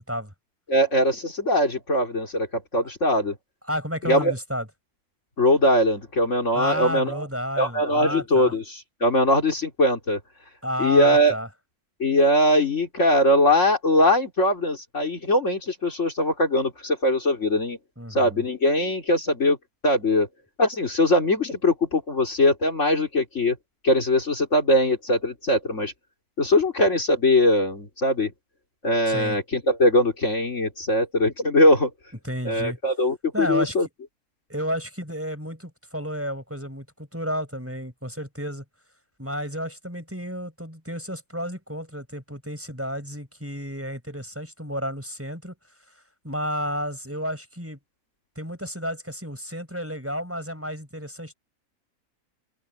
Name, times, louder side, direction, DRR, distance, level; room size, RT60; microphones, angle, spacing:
voice 1, 0.7-3.4 4.0-4.3 5.4-7.3 7.6-10.2 10.8-11.4 12.0-17.8 18.1-19.6 19.8-20.3 20.6-23.6 23.8-25.9 26.4-28.3 28.8-31.9 32.5-33.9, left 1 dB, 55° left, 3.6 m, -21 dB
voice 2, 3.7-4.7 6.5-8.5 10.6-11.5 18.0-18.4 29.1-29.4 32.2-32.8 33.3-33.7 34.5-38.6 39.2-45.5 46.2-47.8 48.3-51.3, equal, 10° right, 5.0 m, -31 dB
omnidirectional pair, 1.5 m